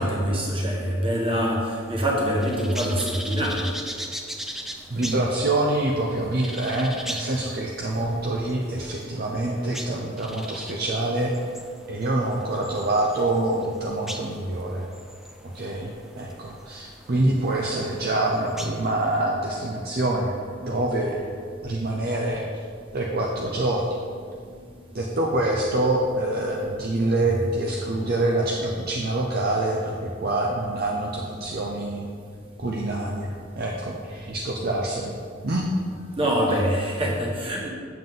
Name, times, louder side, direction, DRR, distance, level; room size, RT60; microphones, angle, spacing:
voice 1, 0.0-3.7 24.3-24.6 36.2-37.7, equal, 30° right, -2 dB, 1.4 m, -25 dB
sound 1, 1.1-19.2, equal, ahead, 0.4 m, -40 dB
voice 2, 4.9-11.3 11.9-14.9 15.5-20.3 20.6-21.3 21.6-22.4 22.9-23.8 24.9-32.1 32.6-35.1 35.4-35.6, right 2 dB, 50° right, -2 dB, 0.6 m, -26 dB
7.6 x 7.2 x 3.8 m, 2.1 s
head